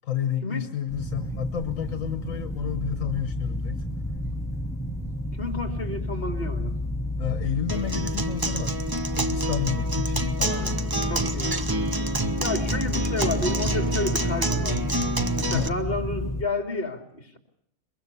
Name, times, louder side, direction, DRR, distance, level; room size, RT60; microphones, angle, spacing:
voice 1, 0.0-3.8 7.2-8.8 9.3-10.8 15.5-15.7, left 10 dB, 75° left, 9 dB, 1.5 m, -30 dB
sound 1, 0.9-16.4, left 1 dB, ahead, 1.1 m, -31 dB
voice 2, 5.4-6.7 10.5-11.6 12.4-14.8 15.4-17.4, left 2 dB, 45° left, 5 dB, 3.0 m, -31 dB
Acoustic guitar, 7.7-15.7, right 2 dB, 20° right, 0.8 m, -28 dB
23.0 x 22.0 x 7.0 m, 0.71 s
omnidirectional pair, 1.4 m